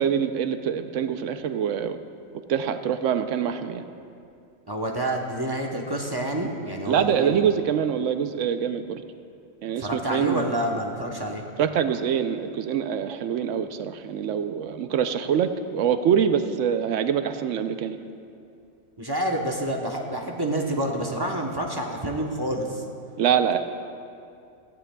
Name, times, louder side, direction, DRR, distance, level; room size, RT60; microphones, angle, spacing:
voice 1, 0.0-2.0 2.5-3.8 6.9-9.0 9.6-10.5 11.6-18.1 23.2-23.6, right 8 dB, 80° right, 9 dB, 1.0 m, -25 dB
voice 2, 4.7-7.5 9.8-11.4 19.0-22.8, right 1 dB, 20° right, 1 dB, 0.8 m, -28 dB
17.0 x 14.5 x 2.3 m, 2.5 s
omnidirectional pair, 1.3 m